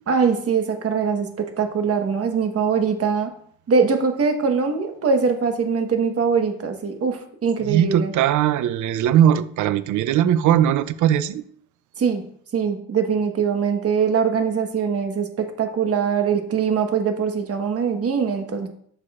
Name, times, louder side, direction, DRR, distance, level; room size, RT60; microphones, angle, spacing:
voice 1, 0.1-3.3 3.7-8.1 12.0-12.2 12.5-18.7, right 6 dB, 50° right, 1.3 m, -22 dB
voice 2, 7.6-11.4, right 10 dB, 75° right, 0.5 m, -19 dB
6.8 x 6.7 x 2.5 m
cardioid pair, 90°, 30 cm